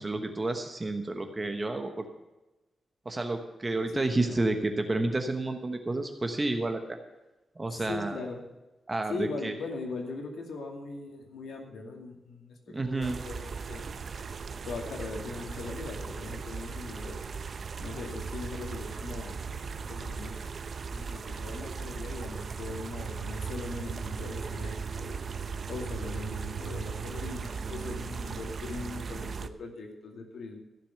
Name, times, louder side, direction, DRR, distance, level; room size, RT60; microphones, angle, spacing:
voice 1, 0.0-2.0 3.0-6.8 7.6-8.2 8.9-9.5 12.7-13.2, right 2 dB, 20° right, 5 dB, 1.1 m, -30 dB
voice 2, 3.9-4.4 7.7-8.4 9.1-13.9 14.7-17.2 17.8-20.4 20.9-25.2 25.7-30.6, left 3 dB, 80° left, 3 dB, 2.4 m, -40 dB
sound 1, 13.0-29.5, right 5 dB, 50° right, 0.6 m, -37 dB
15.0 x 6.9 x 6.9 m, 1.1 s
wide cardioid pair, 150°, 0 cm